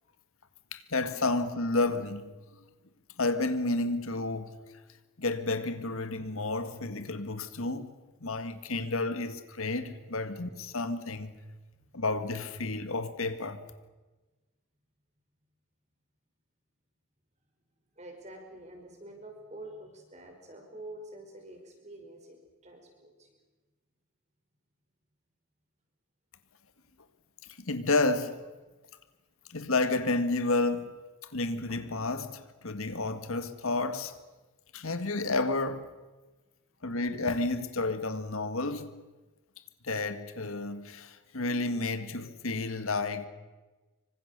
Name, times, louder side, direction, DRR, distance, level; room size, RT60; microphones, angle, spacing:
voice 1, 0.7-2.3 3.2-4.6 5.2-7.9 8.2-11.3 11.9-13.6 27.7-28.5 29.5-34.1 34.7-35.9 36.8-38.9 39.8-43.3, left 2 dB, 75° left, 1.7 m, -31 dB
voice 2, 17.9-23.4, right 1 dB, 30° right, 5.3 m, -47 dB
26.5 x 24.5 x 6.7 m
head